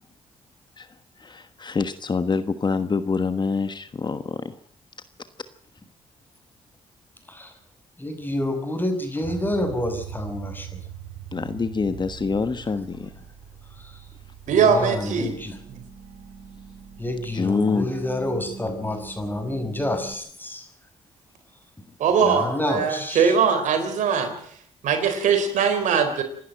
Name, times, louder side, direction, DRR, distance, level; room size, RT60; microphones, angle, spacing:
voice 1, 0.8-4.6 11.3-13.1 17.3-17.9, left 4 dB, 35° left, 11 dB, 1.3 m, -26 dB
voice 2, 8.0-10.8 13.7-14.1 14.5-15.6 17.0-20.7 22.2-23.4, left 1 dB, 15° left, 7 dB, 5.8 m, -29 dB
sound 1, 9.2-20.1, right 8 dB, 60° right, 2.9 m, -41 dB
voice 3, 14.5-15.4 22.0-24.3 24.8-26.2, right 6 dB, 80° right, 7 dB, 4.0 m, -21 dB
26.5 x 11.0 x 9.0 m, 0.63 s
cardioid pair, 70°, 13 cm